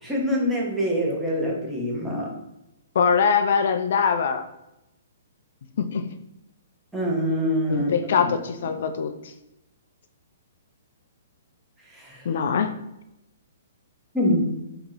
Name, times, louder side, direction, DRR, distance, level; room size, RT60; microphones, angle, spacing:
voice 1, 0.0-2.4 6.9-8.1 11.9-12.3 14.1-14.5, equal, 5° right, -3 dB, 0.9 m, -25 dB
voice 2, 3.0-4.5 5.8-6.0 7.7-9.1 12.3-12.7, left 6 dB, 60° left, 7 dB, 0.3 m, -22 dB
2.9 x 2.8 x 3.7 m, 0.87 s
hypercardioid pair, 145°, 0 cm